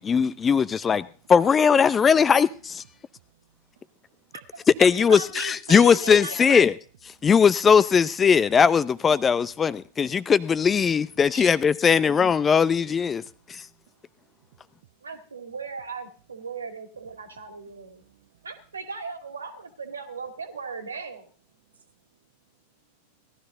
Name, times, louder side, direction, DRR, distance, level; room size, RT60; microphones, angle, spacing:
voice 1, 0.0-2.8 4.8-6.7 7.2-13.2 13.5-13.6, left 6 dB, 20° left, 0.6 m, -19 dB
voice 2, 2.9-4.3 7.2-7.3 12.7-15.1 17.2-17.3 17.5-18.5 21.7-22.3, right 11 dB, 55° right, 0.9 m, -63 dB
voice 3, 4.3-6.7 11.3-11.5 15.0-18.0 18.4-21.3, right 5 dB, 75° right, 2.3 m, -38 dB
18.0 x 12.5 x 3.9 m
figure-of-eight pair, 90°, 0 cm